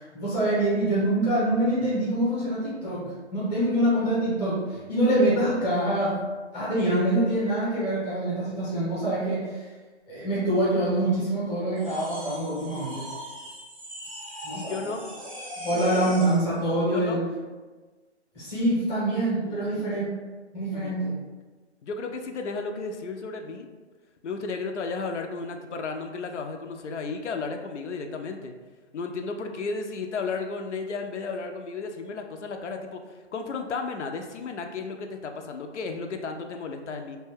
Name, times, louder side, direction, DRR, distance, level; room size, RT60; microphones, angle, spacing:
voice 1, 0.0-6.2 6.5-9.7 10.1-13.1 14.4-14.9 15.6-17.2 18.3-20.1 20.5-21.2, right 1 dB, 5° left, -9 dB, 0.7 m, -25 dB
sound 1, 11.8-16.5, equal, 30° right, 0.4 m, -40 dB
voice 2, 14.5-15.0 16.9-17.2 19.4-19.9 20.7-21.1 21.8-23.7 24.2-28.5 28.9-37.2, left 4 dB, 90° left, 4 dB, 0.5 m, -34 dB
2.6 x 2.2 x 3.4 m, 1.3 s
hypercardioid pair, 155°, 35 cm